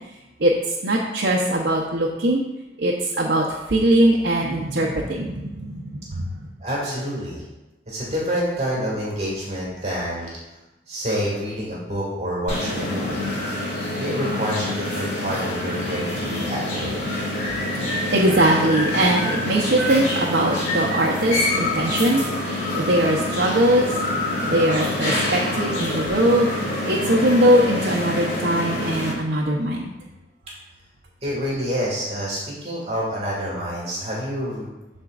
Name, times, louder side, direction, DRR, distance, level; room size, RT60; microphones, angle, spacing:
voice 1, 0.8-2.4 2.8-6.3 17.5-23.9 24.4-26.6 26.8-29.9, right 1 dB, 70° right, -2 dB, 0.8 m, -21 dB
voice 2, 6.6-7.4 7.9-10.3 10.9-13.3 14.0-17.0 31.2-34.7, equal, 40° right, -5 dB, 2.0 m, -27 dB
sound 1, 12.5-29.1, left 1 dB, 75° left, 2.3 m, -26 dB
13.0 x 4.4 x 2.5 m, 1.0 s
head